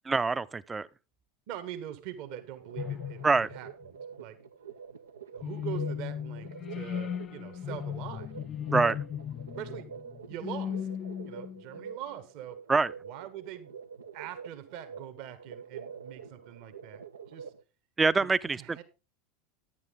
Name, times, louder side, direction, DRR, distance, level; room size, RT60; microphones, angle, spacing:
voice 1, 0.1-0.9 3.2-3.5 8.7-9.0 12.7-12.9 18.0-18.8, right 4 dB, 20° right, 0.6 m, -25 dB
voice 2, 1.5-4.4 5.3-8.3 9.6-9.9 10.3-10.9 11.2-12.6 13.0-13.7 14.1-17.5 18.2-18.8, right 11 dB, 60° right, 1.6 m, -43 dB
sound 1, 2.3-17.6, right 7 dB, 85° right, 0.7 m, -46 dB
sound 2, 2.8-3.8 5.4-11.9, left 9 dB, 35° left, 0.4 m, -36 dB
10.5 x 9.9 x 3.7 m
hypercardioid pair, 85°, 0 cm